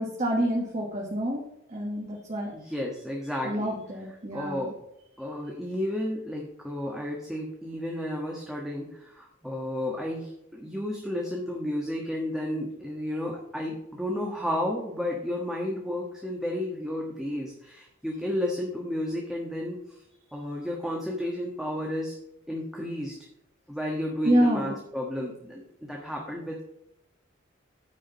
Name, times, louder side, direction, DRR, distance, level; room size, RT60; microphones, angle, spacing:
voice 1, 0.0-1.4 1.7-2.5 3.4-4.7 24.2-24.8, equal, 35° right, -2 dB, 1.6 m, -27 dB
voice 2, 2.5-3.8 4.3-4.8 5.2-20.0 20.3-22.1 22.5-23.1 23.7-26.6, left 1 dB, ahead, -2 dB, 1.3 m, -32 dB
9.3 x 4.9 x 7.1 m, 0.79 s
head